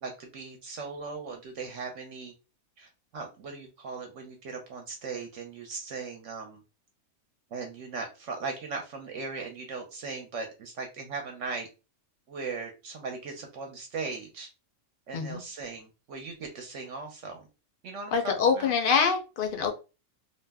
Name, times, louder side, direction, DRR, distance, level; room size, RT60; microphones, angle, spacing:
voice 1, 0.0-2.3 2.8-6.6 7.5-11.7 12.3-14.5 15.1-17.5 17.8-18.7, right 4 dB, 70° right, 3 dB, 0.9 m, -38 dB
voice 2, 18.1-19.7, left 6 dB, 60° left, 5 dB, 0.5 m, -25 dB
2.5 x 2.0 x 3.3 m, 0.30 s
omnidirectional pair, 1.4 m